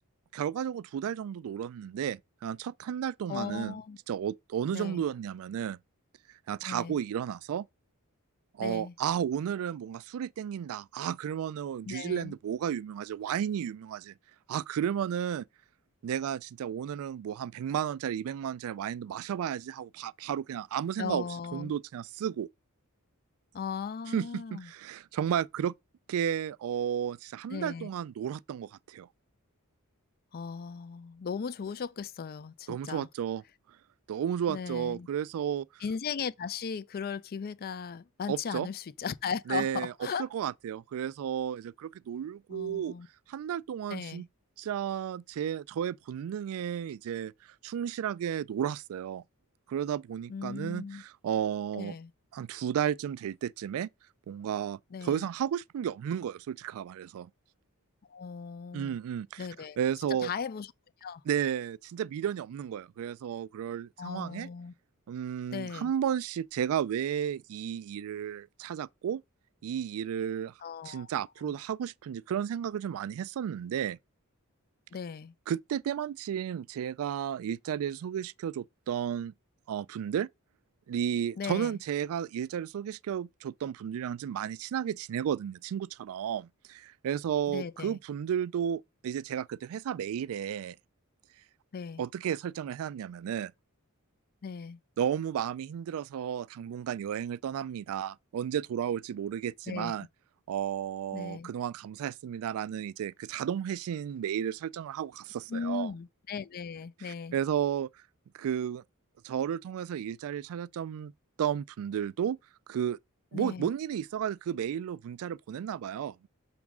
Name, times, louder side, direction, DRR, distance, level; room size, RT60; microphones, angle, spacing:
voice 1, 0.3-3.8 4.1-5.8 6.5-7.7 8.5-14.1 14.5-15.5 16.0-21.3 21.5-22.5 24.1-25.7 26.1-29.1 32.7-33.4 34.1-35.7 38.3-38.7 39.5-39.9 40.2-42.9 43.3-44.3 44.6-47.3 47.6-49.2 49.7-52.0 52.3-53.9 54.3-57.3 58.7-59.5 59.8-60.3 61.3-64.5 65.1-69.2 69.6-70.5 70.9-74.0 75.5-79.3 79.7-80.3 80.9-90.8 92.0-93.5 95.0-100.1 100.5-105.9 107.0-107.9 108.3-108.8 109.2-111.1 111.4-112.4 112.7-113.0 113.3-116.3, right 9 dB, 65° right, 0.3 m, -33 dB
voice 2, 3.3-4.0 4.7-5.0 6.6-7.0 8.6-8.9 11.9-12.3 21.0-21.7 23.5-24.7 27.5-27.9 30.3-33.1 34.5-35.1 35.8-40.3 42.5-43.1 43.9-44.2 50.3-51.0 51.7-52.1 54.9-55.3 58.1-59.0 59.4-59.8 60.1-60.7 61.0-61.2 64.0-64.7 65.5-65.9 70.6-71.1 71.4-71.5 74.9-75.3 81.4-81.8 87.5-88.0 91.7-92.0 94.4-94.8 99.7-99.9 101.1-101.5 105.5-107.4 113.3-113.7, left 6 dB, 45° left, 0.4 m, -37 dB
6.2 x 3.6 x 6.0 m
head